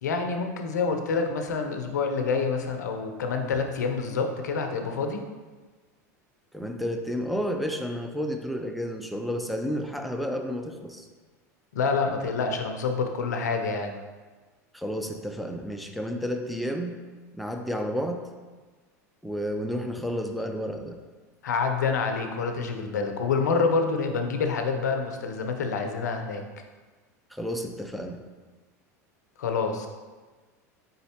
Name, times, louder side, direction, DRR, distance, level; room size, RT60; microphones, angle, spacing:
voice 1, 0.0-5.2 11.7-14.0 21.4-26.4 29.4-29.9, left 4 dB, 85° left, 5 dB, 0.5 m, -27 dB
voice 2, 6.5-11.1 14.7-17.0 17.3-18.2 19.2-21.0 27.3-28.2, equal, ahead, 3 dB, 0.4 m, -31 dB
4.1 x 3.9 x 2.8 m, 1.3 s
hypercardioid pair, 90°, 9 cm